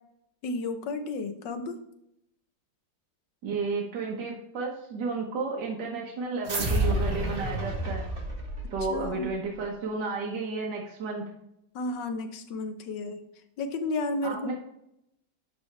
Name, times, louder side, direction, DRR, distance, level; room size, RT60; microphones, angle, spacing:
voice 1, 0.4-1.8 8.9-9.3 11.7-13.2 13.6-14.5, left 2 dB, 80° left, 8 dB, 1.5 m, -32 dB
voice 2, 3.4-8.0 8.7-11.3 14.2-14.5, right 4 dB, 75° right, -2 dB, 1.8 m, -32 dB
sound 1, 6.5-9.2, right 1 dB, 35° right, 1.3 m, -29 dB
11.5 x 4.2 x 3.3 m, 0.79 s
omnidirectional pair, 1.9 m